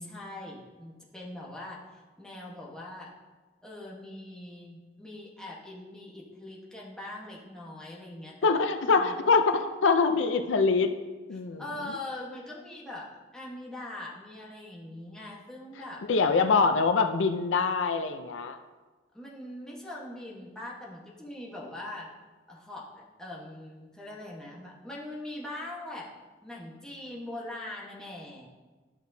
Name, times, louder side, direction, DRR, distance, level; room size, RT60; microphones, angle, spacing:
voice 1, 0.0-3.1 3.6-8.4 8.8-9.3 11.3-16.3 19.1-22.1 22.5-26.1 26.4-28.5, left 1 dB, 5° left, -5 dB, 1.2 m, -42 dB
voice 2, 8.4-10.9 11.3-11.6 16.1-18.6, left 4 dB, 85° left, 8 dB, 0.5 m, -24 dB
11.5 x 6.2 x 2.7 m, 1.3 s
head